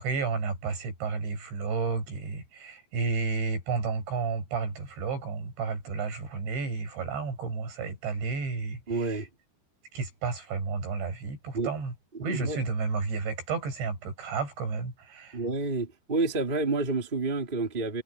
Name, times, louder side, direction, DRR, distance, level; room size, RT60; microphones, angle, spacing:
voice 1, 0.0-9.3 9.9-11.9 12.2-15.4, right 4 dB, 80° right, 9.3 m, -32 dB
voice 2, 8.9-9.3 11.5-11.7 12.1-12.6 15.3-18.0, right 3 dB, 15° right, 2.9 m, -29 dB
omnidirectional pair, 5.1 m